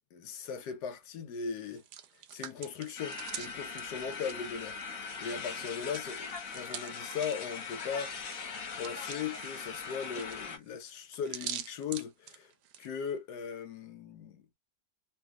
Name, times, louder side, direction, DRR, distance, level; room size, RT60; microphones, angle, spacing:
voice 1, 0.1-1.8 2.3-12.5 12.8-14.4, left 6 dB, 75° left, 1.4 m, -39 dB
Hands, 1.6-5.3 5.6-12.9, right 10 dB, 80° right, 1.2 m, -45 dB
sound 1, 3.0-10.6, left 5 dB, 55° left, 1.3 m, -41 dB
4.0 x 2.3 x 2.3 m
omnidirectional pair, 1.8 m